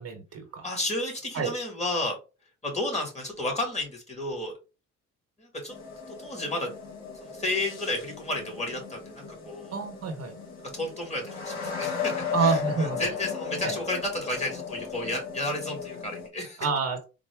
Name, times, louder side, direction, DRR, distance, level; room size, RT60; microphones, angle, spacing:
voice 1, 0.0-0.7 1.3-1.5 9.7-10.3 12.3-13.1 13.6-13.7 16.6-17.0, right 4 dB, 55° right, 5 dB, 0.9 m, -28 dB
voice 2, 0.6-2.2 2.6-4.5 5.4-5.7 6.1-6.7 7.2-9.7 10.7-16.7, left 1 dB, 20° left, 1 dB, 1.8 m, -32 dB
sound 1, 5.7-16.3, left 6 dB, 65° left, 1.5 m, -36 dB
3.8 x 2.1 x 3.5 m, 0.30 s
cardioid pair, 90°, 30 cm